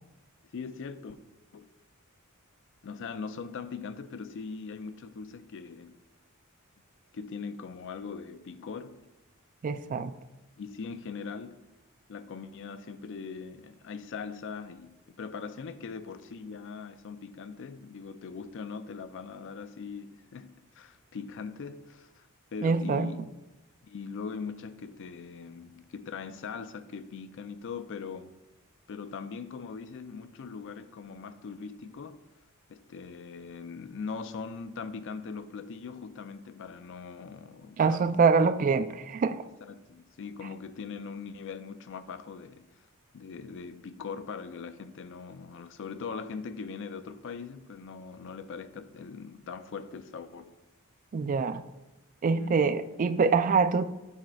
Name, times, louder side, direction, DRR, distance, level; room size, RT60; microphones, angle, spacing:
voice 1, 0.5-1.2 1.5-1.7 2.8-6.0 7.1-9.0 10.6-11.6 12.1-23.2 23.8-28.3 28.9-32.2 32.7-38.3 39.6-42.7 43.1-50.5 52.4-52.6, left 5 dB, 60° left, 0.4 m, -41 dB
voice 2, 9.6-10.1 22.6-23.1 37.8-39.4 51.1-51.6 52.2-53.8, right 5 dB, 40° right, 0.3 m, -25 dB
7.4 x 3.2 x 5.7 m
head